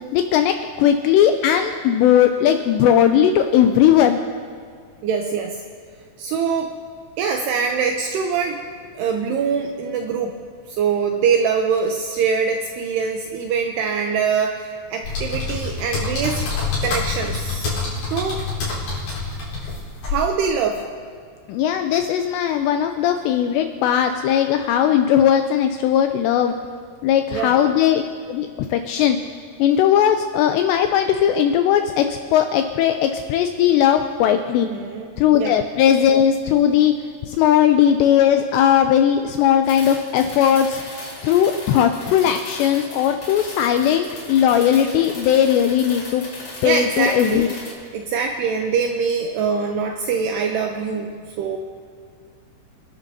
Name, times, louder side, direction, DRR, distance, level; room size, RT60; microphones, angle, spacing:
voice 1, 0.1-4.2 21.5-26.5 27.0-28.0 28.3-29.2 29.6-34.7 35.2-36.9 37.2-40.8 41.2-46.2 46.6-47.5, left 9 dB, 85° left, 6 dB, 2.5 m, -18 dB
voice 2, 5.0-5.6 6.2-6.8 7.2-8.6 9.0-10.4 10.7-16.5 16.8-17.6 18.1-18.5 20.1-20.9 27.3-27.5 34.6-35.1 35.4-35.5 46.6-47.5 47.9-51.6, right 6 dB, 80° right, 3 dB, 2.4 m, -23 dB
sound 1, 15.0-20.2, left 4 dB, 60° left, 6.2 m, -26 dB
sound 2, 39.6-47.7, left 2 dB, 35° left, 2.8 m, -37 dB
27.0 x 11.0 x 2.8 m, 2.1 s
omnidirectional pair, 5.5 m